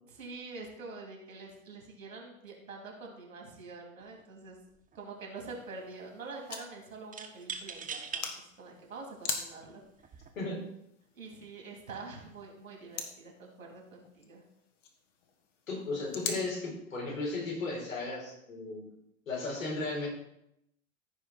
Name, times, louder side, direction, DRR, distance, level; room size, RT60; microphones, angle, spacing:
voice 1, 0.0-4.6 4.9-8.2 8.6-9.8 11.1-14.4, right 3 dB, 85° right, 1 dB, 3.1 m, -46 dB
sound 1, 4.0-4.2 4.5-5.2 7.1-8.3 9.0-9.1 10.0-10.3, right 6 dB, 20° right, 1.2 m, -41 dB
sound 2, 5.4-16.4, left 6 dB, 65° left, 1.7 m, -44 dB
voice 2, 15.7-18.9 19.3-20.1, left 2 dB, 80° left, -3 dB, 4.4 m, -35 dB
15.0 x 5.2 x 4.2 m, 0.80 s
hypercardioid pair, 95°, 39 cm